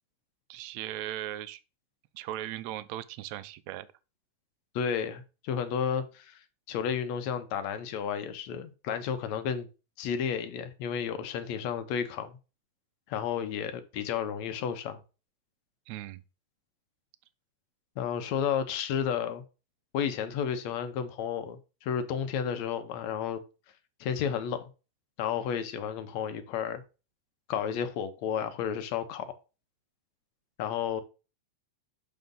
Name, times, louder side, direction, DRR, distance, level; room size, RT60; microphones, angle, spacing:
voice 1, 0.5-1.6 2.2-3.9 15.9-16.2, right 13 dB, 80° right, 1.9 m, -38 dB
voice 2, 4.8-6.4 6.7-9.7 10.0-12.4 13.1-15.0 18.0-19.4 19.9-23.4 24.0-24.7 25.2-26.8 27.5-29.3 30.6-31.0, left 8 dB, 75° left, 2.1 m, -32 dB
7.0 x 5.4 x 3.7 m
omnidirectional pair, 3.3 m